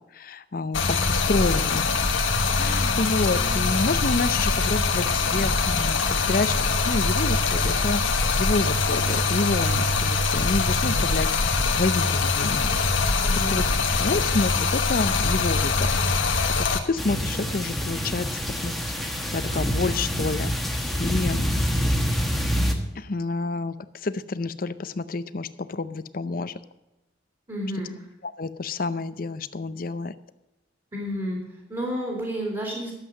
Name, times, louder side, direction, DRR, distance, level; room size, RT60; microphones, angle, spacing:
voice 1, 0.0-1.9 2.6-12.8 13.5-13.6 13.9-15.9 16.6-18.8 19.3-21.6 22.9-26.6 28.2-30.1, left 3 dB, 45° left, 14 dB, 0.6 m, -29 dB
Stream, 0.7-16.8, left 4 dB, 90° left, 1.5 m, -23 dB
voice 2, 13.2-13.6 27.5-27.9 30.9-32.9, equal, 25° right, -1 dB, 2.6 m, -31 dB
sound 1, 17.0-22.7, equal, ahead, 1.2 m, -26 dB
12.0 x 7.7 x 6.5 m, 0.97 s
head